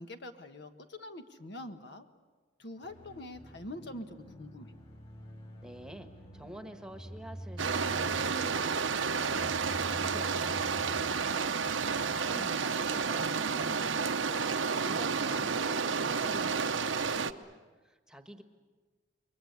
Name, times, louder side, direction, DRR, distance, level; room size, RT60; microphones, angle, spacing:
voice 1, 0.0-2.1 2.6-4.7 11.9-12.6, left 1 dB, 60° left, 7 dB, 1.5 m, -45 dB
sound 1, 2.8-13.6, equal, 30° left, 4.7 m, -48 dB
voice 2, 5.6-9.5 9.8-14.5 14.8-17.5 17.8-18.4, right 1 dB, 5° right, 7 dB, 1.5 m, -49 dB
sound 2, 7.6-17.3, right 5 dB, 85° right, 0.9 m, -31 dB
28.5 x 23.0 x 8.2 m, 1.3 s
head